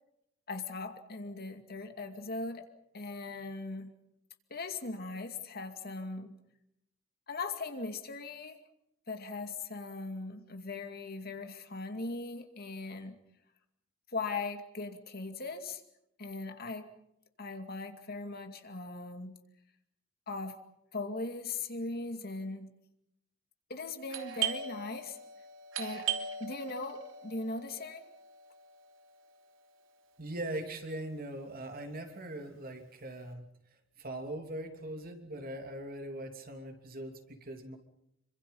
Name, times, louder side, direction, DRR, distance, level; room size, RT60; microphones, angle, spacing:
voice 1, 0.5-2.6 2.9-3.9 4.5-6.4 7.3-8.6 9.1-13.2 14.1-15.8 16.2-16.9 17.4-19.3 20.3-20.6 20.9-22.7 23.7-25.2 25.8-26.1 26.4-28.1, left 3 dB, 50° left, 6 dB, 2.4 m, -39 dB
Doorbell, 24.1-29.6, right 8 dB, 90° right, 3.2 m, -39 dB
voice 2, 30.2-33.5 34.0-37.8, right 1 dB, 50° right, 5 dB, 3.1 m, -41 dB
27.5 x 25.0 x 5.5 m, 0.80 s
head